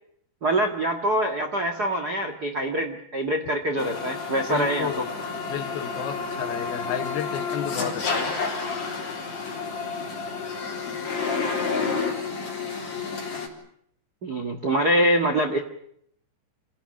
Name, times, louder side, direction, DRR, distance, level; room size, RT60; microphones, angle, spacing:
voice 1, 0.4-4.9 14.2-15.6, right 1 dB, 50° right, 4 dB, 1.1 m, -24 dB
sound 1, 3.8-13.5, left 4 dB, 45° left, 4.7 m, -30 dB
voice 2, 4.5-5.1 5.5-8.4, left 9 dB, 75° left, 9 dB, 3.2 m, -32 dB
26.5 x 17.5 x 9.9 m, 0.70 s
omnidirectional pair, 4.7 m